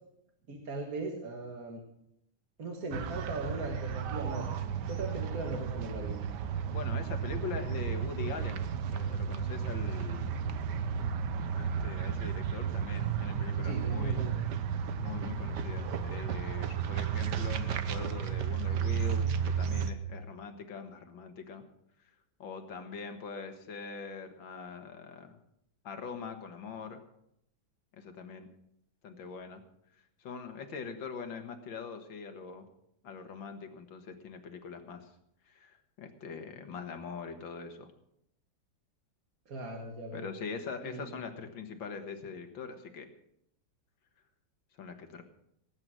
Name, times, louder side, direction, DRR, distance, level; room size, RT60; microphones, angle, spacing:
voice 1, 0.5-1.8 2.6-4.5 4.9-6.2 13.6-14.4 39.5-40.3 40.8-41.0, right 2 dB, 50° right, 1 dB, 2.0 m, -38 dB
sound 1, 2.9-19.9, right 7 dB, 65° right, 1.4 m, -33 dB
voice 2, 6.7-10.3 11.6-14.2 15.0-21.7 22.4-25.4 25.8-27.0 27.9-28.5 29.0-29.6 30.2-32.7 33.0-35.1 35.5-37.9 40.1-43.1 44.8-45.2, left 5 dB, 75° left, 6 dB, 2.2 m, -42 dB
18.5 x 8.7 x 6.2 m, 0.76 s
omnidirectional pair, 2.1 m